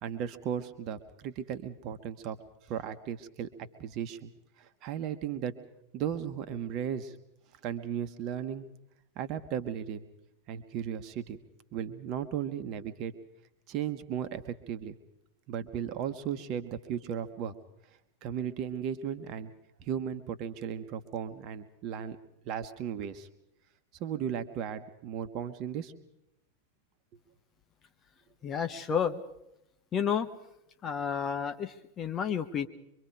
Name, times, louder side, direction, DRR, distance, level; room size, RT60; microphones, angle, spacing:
voice 1, 0.0-2.4 2.7-4.3 4.6-5.5 5.9-7.1 7.6-8.7 9.1-10.0 10.5-11.4 11.7-13.1 13.7-14.9 15.5-17.5 18.2-19.5 19.8-22.2 22.4-23.3 24.0-25.9, right 8 dB, 40° right, 9 dB, 1.4 m, -36 dB
voice 2, 28.4-29.2 29.9-30.3 30.8-32.7, left 7 dB, 25° left, 7 dB, 1.3 m, -31 dB
24.5 x 24.0 x 4.8 m, 0.84 s
figure-of-eight pair, 90°, 0 cm